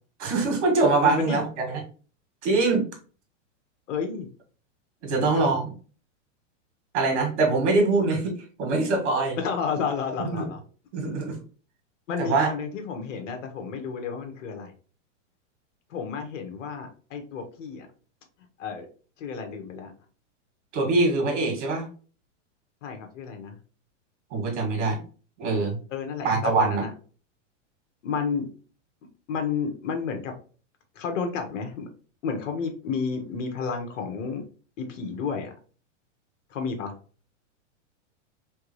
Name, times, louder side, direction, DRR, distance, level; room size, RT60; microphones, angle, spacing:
voice 1, 0.2-1.8 2.4-2.9 5.0-5.7 6.9-9.4 10.3-10.5 10.9-11.4 12.2-12.5 20.7-21.9 24.3-25.0 25.4-25.8 26.2-26.8, right 3 dB, 65° right, 2 dB, 2.2 m, -23 dB
voice 2, 1.0-1.4 3.9-4.3 5.1-5.6 9.4-10.6 12.1-14.7 15.9-17.9 18.6-18.9 19.2-19.9 22.8-23.6 25.9-26.9 28.0-28.5 29.3-30.3 30.9-31.9 32.2-34.4 34.8-35.5 36.5-36.9, left 5 dB, 80° left, 5 dB, 1.4 m, -31 dB
3.6 x 3.6 x 3.1 m, 0.39 s
supercardioid pair, 150°, 37 cm